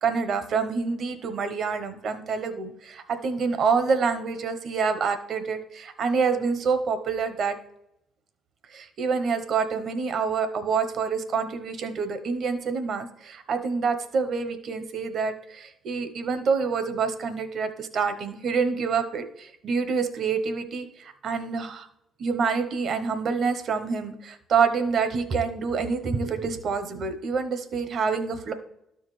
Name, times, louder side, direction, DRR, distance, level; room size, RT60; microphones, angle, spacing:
voice 1, 0.0-7.6 8.7-21.9 22.2-28.5, right 5 dB, 60° right, 9 dB, 0.9 m, -27 dB
12.5 x 4.8 x 3.2 m, 0.82 s
supercardioid pair, 65°, 0 cm